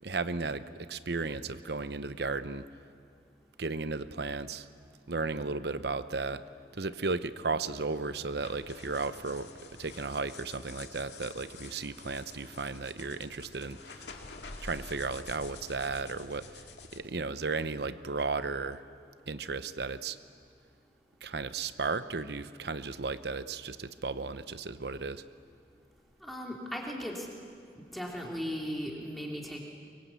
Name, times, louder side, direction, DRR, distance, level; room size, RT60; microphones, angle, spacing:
voice 1, 0.0-2.7 3.6-4.7 5.1-6.4 6.7-9.5 9.8-14.2 14.6-16.6 16.9-18.8 19.3-20.2 21.2-25.2, right 3 dB, 70° right, 13 dB, 0.9 m, -34 dB
sound 1, 8.4-17.0, left 4 dB, 85° left, 2.1 m, -48 dB
voice 2, 26.2-27.3 27.8-29.6, equal, ahead, -1 dB, 3.0 m, -37 dB
24.5 x 23.5 x 8.3 m, 2.3 s
head